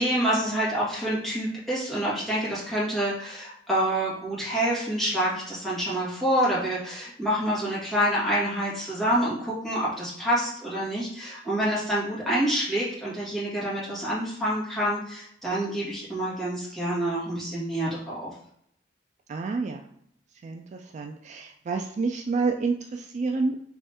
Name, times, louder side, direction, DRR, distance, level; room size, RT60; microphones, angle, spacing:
voice 1, 0.0-18.3, equal, ahead, -9 dB, 1.7 m, -27 dB
voice 2, 19.3-19.8 20.4-23.6, right 4 dB, 40° right, 4 dB, 0.3 m, -29 dB
3.4 x 3.1 x 4.2 m, 0.69 s
head